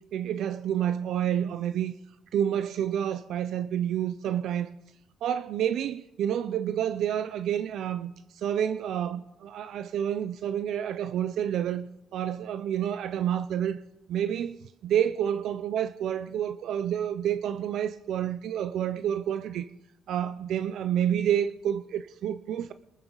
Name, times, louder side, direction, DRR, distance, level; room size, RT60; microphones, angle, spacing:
voice 1, 0.1-1.9 2.3-4.7 5.2-13.8 14.1-19.7 20.1-22.7, right 10 dB, 75° right, 0.5 m, -29 dB
22.0 x 14.0 x 3.9 m
cardioid pair, 90°, 0 cm